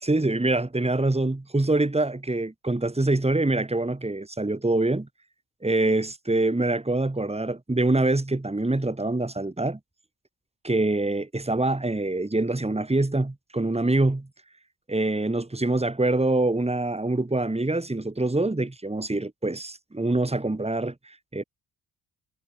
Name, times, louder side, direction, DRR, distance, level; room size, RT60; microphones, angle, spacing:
voice 1, 0.0-5.1 5.6-9.8 10.6-14.3 14.9-21.4, right 2 dB, 15° right, 4.0 m, -25 dB
supercardioid pair, 65°, 44 cm